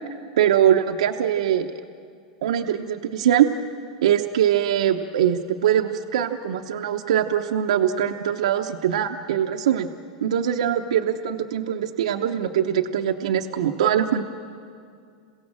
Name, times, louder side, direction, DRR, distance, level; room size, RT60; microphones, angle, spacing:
voice 1, 0.4-1.7 2.4-3.5 4.0-9.9 10.2-14.2, right 10 dB, 80° right, 3 dB, 0.9 m, -22 dB
27.5 x 17.0 x 7.5 m, 2.2 s
hypercardioid pair, 110°, 3 cm